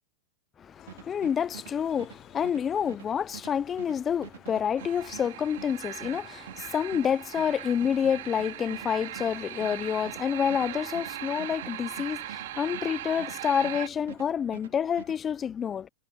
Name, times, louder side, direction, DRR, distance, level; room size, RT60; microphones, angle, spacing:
voice 1, 0.6-15.9, left 8 dB, 20° left, 0.3 m, -28 dB
Applause, 0.7-9.1, left 19 dB, 45° left, 4.4 m, -59 dB
sound 1, 0.9-13.8 14.1-15.2, right 10 dB, 85° right, 2.0 m, -46 dB
sound 2, 4.8-13.9, right 15 dB, 70° right, 2.8 m, -39 dB
hypercardioid pair, 130°, 0 cm